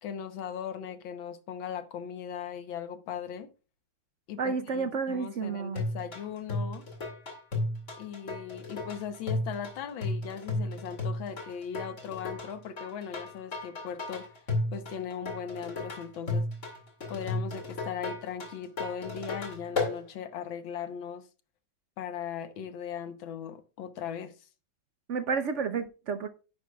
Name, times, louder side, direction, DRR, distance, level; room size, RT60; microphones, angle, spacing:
voice 1, 0.0-3.5 4.3-6.8 8.0-14.2 14.7-16.4 17.1-21.2 22.0-24.3, left 8 dB, 85° left, 1.7 m, -38 dB
voice 2, 4.4-5.8 25.1-26.3, right 5 dB, 70° right, 0.7 m, -31 dB
sound 1, 5.8-20.0, left 2 dB, 35° left, 2.6 m, -34 dB
10.5 x 10.0 x 2.3 m
omnidirectional pair, 2.1 m